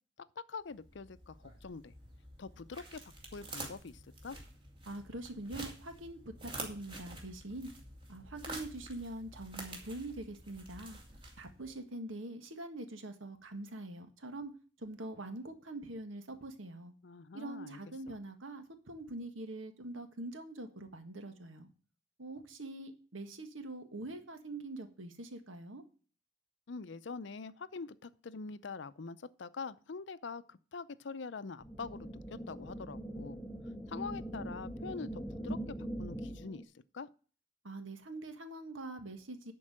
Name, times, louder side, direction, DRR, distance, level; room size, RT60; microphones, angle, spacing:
voice 1, 0.4-1.9 2.4-3.0 3.3-4.4 17.0-17.8 26.7-33.4 33.9-36.7 36.9-37.1, left 4 dB, 65° left, 0.5 m, -44 dB
sound 1, 0.7-11.8, right 2 dB, 25° right, 2.1 m, -48 dB
voice 2, 4.8-7.7 8.1-11.0 11.4-14.5 14.8-16.9 17.3-21.7 22.2-25.8 37.6-39.5, right 2 dB, 90° right, 1.6 m, -44 dB
sound 2, 31.6-36.6, right 1 dB, 5° left, 0.8 m, -42 dB
11.0 x 4.6 x 7.4 m
head